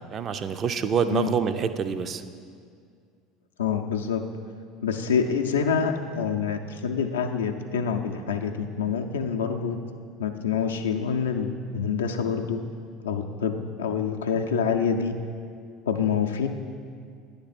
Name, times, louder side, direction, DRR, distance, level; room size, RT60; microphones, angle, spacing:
voice 1, 0.0-2.2, right 6 dB, 40° right, 10 dB, 0.3 m, -26 dB
voice 2, 3.6-4.2 4.8-9.8 10.2-12.6 13.0-15.1 15.9-16.5, left 6 dB, 80° left, 5 dB, 0.4 m, -26 dB
9.6 x 3.3 x 4.1 m, 2.2 s
figure-of-eight pair, 70°, 0 cm